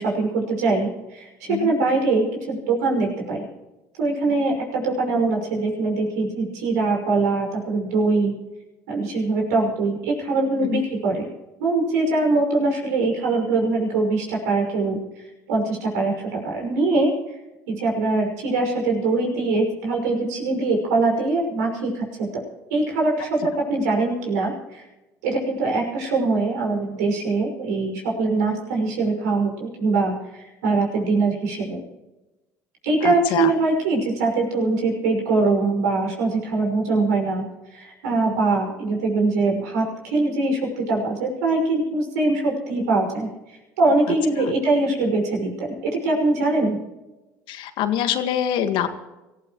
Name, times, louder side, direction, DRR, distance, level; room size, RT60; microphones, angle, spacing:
voice 1, 0.0-3.5 4.0-8.3 8.9-11.3 11.6-17.4 17.7-22.4 22.7-24.8 25.2-31.8 32.8-37.5 37.7-46.8, right 3 dB, 80° right, 0 dB, 5.8 m, -23 dB
voice 2, 33.0-33.5 47.5-48.9, left 10 dB, 65° left, 8 dB, 1.7 m, -24 dB
25.0 x 15.5 x 3.1 m, 1.0 s
hypercardioid pair, 70°, 9 cm